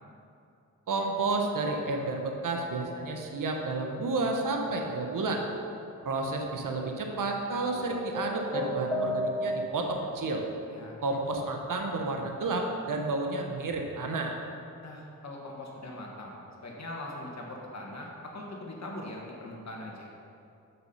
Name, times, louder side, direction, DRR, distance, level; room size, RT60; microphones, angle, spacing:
voice 1, 0.9-5.4 6.0-10.4 11.0-14.4, right 3 dB, 70° right, 2 dB, 0.9 m, -31 dB
sound 1, 7.7-9.8, equal, 10° left, 1.2 m, -32 dB
voice 2, 14.8-16.3 16.6-20.1, left 1 dB, 50° left, -2 dB, 1.6 m, -41 dB
6.3 x 6.1 x 5.5 m, 2.7 s
cardioid pair, 60°, 34 cm